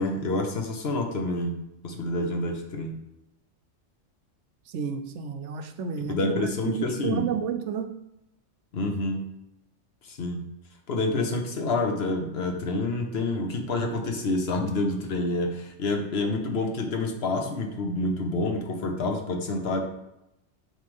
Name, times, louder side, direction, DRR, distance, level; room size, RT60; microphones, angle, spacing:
voice 1, 0.0-1.6 1.8-2.9 6.1-7.3 8.7-9.2 10.0-10.4 10.9-19.8, left 2 dB, 55° left, 4 dB, 1.1 m, -28 dB
voice 2, 4.7-8.0, right 7 dB, 70° right, 7 dB, 0.9 m, -31 dB
6.4 x 3.3 x 5.3 m, 0.84 s
omnidirectional pair, 1.3 m